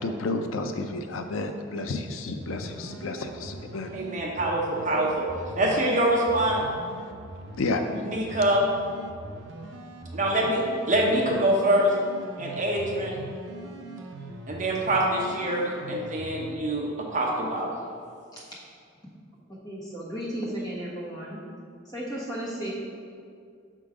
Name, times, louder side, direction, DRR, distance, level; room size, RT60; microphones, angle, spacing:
voice 1, 0.0-3.9 4.2-4.4 7.6-7.8, left 3 dB, 90° left, 6 dB, 0.5 m, -31 dB
sound 1, 2.4-16.5, right 1 dB, 70° right, 0.6 m, -42 dB
voice 2, 3.9-5.3 5.5-6.7 8.1-8.7 10.1-10.6 10.9-11.9 12.4-13.2 14.5-17.7, right 1 dB, 40° right, -3 dB, 0.9 m, -25 dB
voice 3, 19.6-21.4 21.8-22.7, right 1 dB, 20° left, -7 dB, 1.4 m, -34 dB
6.4 x 3.8 x 4.9 m, 2.3 s
head